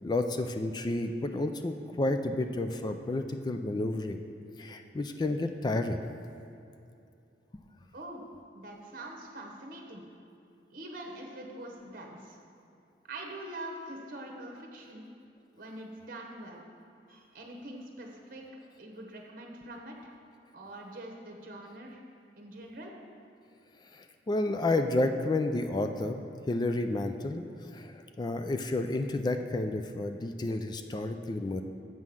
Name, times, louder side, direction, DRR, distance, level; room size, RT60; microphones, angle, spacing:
voice 1, 0.0-4.2 4.6-6.0 7.5-7.6 24.0-27.4 27.7-31.6, left 2 dB, 25° left, 7 dB, 0.3 m, -31 dB
voice 2, 8.5-10.0 10.7-12.4 13.0-15.1 15.6-16.6 17.1-20.1 20.5-22.0 22.4-22.9, right 1 dB, 50° right, 1 dB, 1.1 m, -44 dB
7.6 x 5.6 x 6.2 m, 2.6 s
head